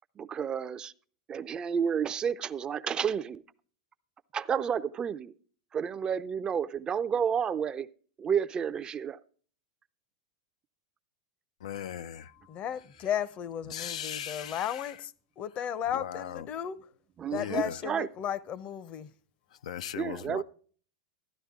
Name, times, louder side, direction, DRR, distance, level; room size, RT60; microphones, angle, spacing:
voice 1, 0.2-0.9 1.3-3.4 4.3-5.3 5.7-7.9 8.2-9.2 17.2-18.1 20.0-20.4, right 7 dB, 25° right, 0.5 m, -31 dB
voice 2, 11.6-12.6 13.7-15.0 15.9-16.5 17.3-17.8 19.5-20.4, left 9 dB, 85° left, 0.5 m, -39 dB
voice 3, 12.5-16.8 17.3-19.1, left 9 dB, 35° left, 0.7 m, -34 dB
13.5 x 10.0 x 3.6 m
supercardioid pair, 130°, 4 cm